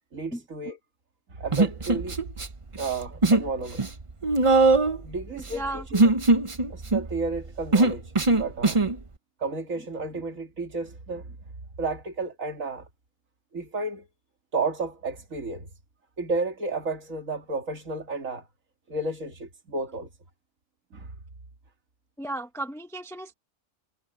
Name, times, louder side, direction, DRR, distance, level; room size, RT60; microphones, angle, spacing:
voice 1, 0.1-0.8 1.3-2.2 2.8-3.9 5.0-6.1 6.7-8.9 9.4-11.4 11.8-12.9 13.5-14.1 14.5-15.7 16.2-18.5 18.9-20.1 20.9-21.1, right 3 dB, 70° right, 2.7 m, -32 dB
Human voice, 1.5-2.5 2.7-3.5 3.8-9.0, right 3 dB, 25° right, 0.9 m, -21 dB
voice 2, 5.3-5.8 22.2-23.3, right 1 dB, ahead, 1.0 m, -35 dB
omnidirectional pair, 1.4 m